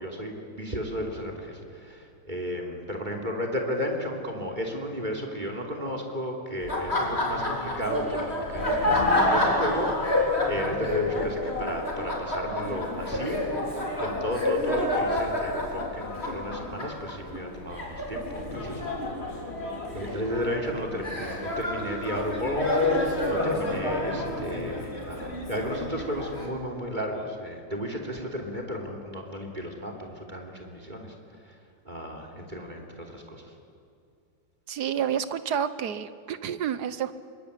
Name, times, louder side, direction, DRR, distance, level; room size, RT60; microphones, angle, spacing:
voice 1, 0.0-13.4 14.0-18.8 19.9-31.1 31.4-31.5 31.8-33.5, equal, 20° right, 3 dB, 3.2 m, -34 dB
Laughter, 6.6-26.5, left 1 dB, 30° left, 4.2 m, -28 dB
voice 2, 34.7-37.1, right 8 dB, 60° right, 13 dB, 1.4 m, -29 dB
25.0 x 22.5 x 10.0 m, 2.4 s
omnidirectional pair, 2.1 m